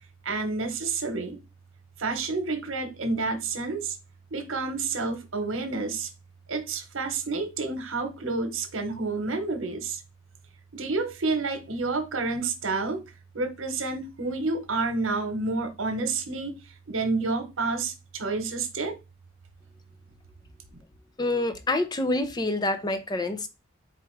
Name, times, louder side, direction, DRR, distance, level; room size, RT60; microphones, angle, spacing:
voice 1, 0.2-1.4 2.0-3.9 4.3-6.1 6.5-10.0 10.7-13.0 13.3-16.6 16.9-19.0, right 3 dB, 80° right, 1.1 m, -29 dB
voice 2, 21.2-23.5, left 2 dB, 20° left, 0.5 m, -27 dB
4.6 x 2.5 x 4.5 m
head